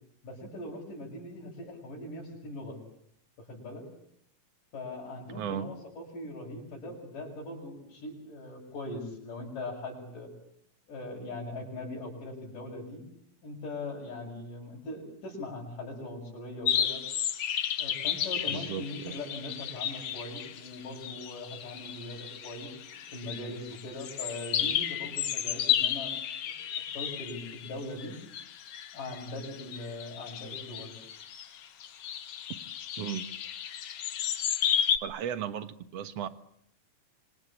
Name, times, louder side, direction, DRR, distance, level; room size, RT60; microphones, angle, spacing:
voice 1, 0.2-2.8 3.4-3.9 4.7-10.3 10.9-13.0 13.4-17.0 17.8-26.1 26.4-28.2 28.9-31.0, left 2 dB, 85° left, -4 dB, 8.4 m, -41 dB
voice 2, 5.3-5.7 18.5-19.2 33.0-33.3 35.0-36.3, right 9 dB, 55° right, 12 dB, 2.3 m, -35 dB
sound 1, 16.7-35.0, left 9 dB, 55° left, 2.0 m, -33 dB
26.0 x 26.0 x 8.6 m, 0.68 s
omnidirectional pair, 3.7 m